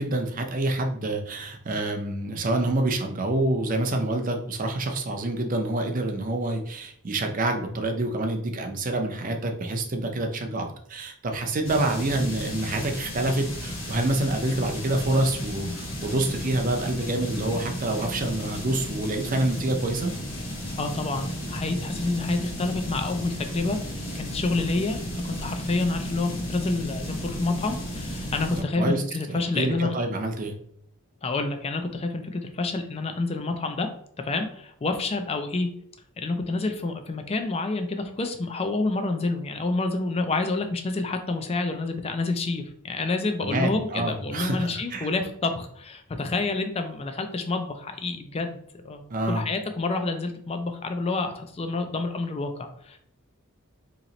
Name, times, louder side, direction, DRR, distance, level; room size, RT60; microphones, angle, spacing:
voice 1, 0.0-20.1 28.8-29.0 29.3-30.5 43.4-45.1 49.1-49.4, right 2 dB, 40° right, 4 dB, 0.5 m, -27 dB
sound 1, 11.6-28.6, equal, 70° left, 1.3 m, -34 dB
voice 2, 20.8-29.9 31.2-33.9 34.2-35.7 36.2-48.6 48.8-53.0, left 3 dB, 25° left, 7 dB, 0.4 m, -28 dB
3.0 x 2.9 x 3.9 m, 0.68 s
head